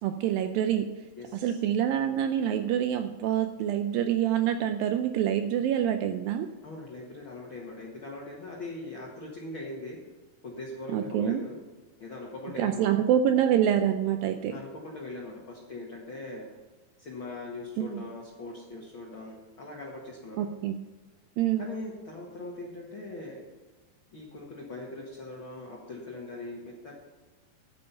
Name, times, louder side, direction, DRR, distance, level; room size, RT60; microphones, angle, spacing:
voice 1, 0.0-0.9 1.3-6.5 10.9-11.4 12.6-14.5 17.8-18.0 20.4-20.8 21.4-21.7, right 10 dB, 80° right, 7 dB, 2.1 m, -26 dB
voice 2, 1.2-1.6 6.6-10.0 10.4-11.6 12.0-13.0 14.5-16.5 17.0-20.5 21.6-23.5 24.1-26.9, left 2 dB, 55° left, -3 dB, 1.4 m, -41 dB
11.0 x 8.5 x 5.6 m, 1.3 s
omnidirectional pair, 4.5 m